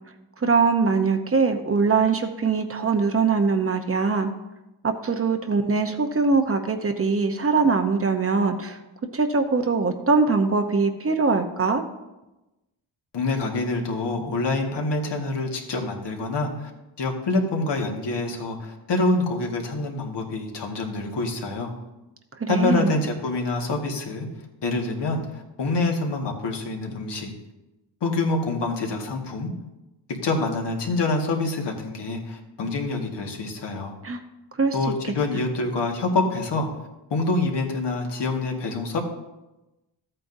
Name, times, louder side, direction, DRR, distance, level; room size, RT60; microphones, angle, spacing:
voice 1, 0.4-4.3 4.8-8.8 9.1-11.8 22.4-22.9 34.0-34.2 34.6-34.8 35.0-35.1, right 4 dB, 30° right, 5 dB, 0.8 m, -22 dB
voice 2, 13.1-16.7 17.0-21.7 22.5-24.3 24.6-27.3 28.0-29.5 30.1-33.9 34.7-36.7 37.1-39.0, left 2 dB, 65° left, 1 dB, 1.9 m, -26 dB
13.5 x 8.7 x 2.7 m, 1.0 s
cardioid pair, 90°, 45 cm